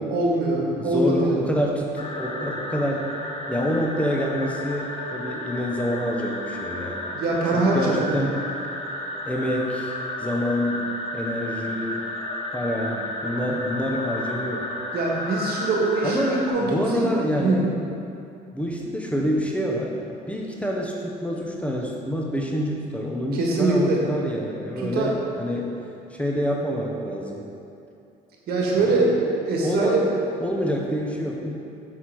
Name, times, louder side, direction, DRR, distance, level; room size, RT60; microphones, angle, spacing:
voice 1, 0.0-1.4 7.1-8.1 14.9-17.1 17.4-17.6 23.3-24.0 24.8-25.1 28.5-29.2 29.4-30.1, right 2 dB, 65° right, -2 dB, 1.5 m, -23 dB
voice 2, 0.8-3.1 3.5-4.9 5.1-7.0 7.5-8.4 9.2-9.9 10.2-10.8 11.1-12.0 12.5-14.7 16.0-17.6 18.5-25.7 26.1-27.4 28.8-29.0 29.6-30.1 30.4-31.5, equal, 5° left, -1 dB, 0.8 m, -27 dB
sound 1, 2.0-16.5, left 1 dB, 35° left, 1.0 m, -33 dB
6.5 x 5.8 x 4.6 m, 2.6 s
cardioid pair, 110°, 17 cm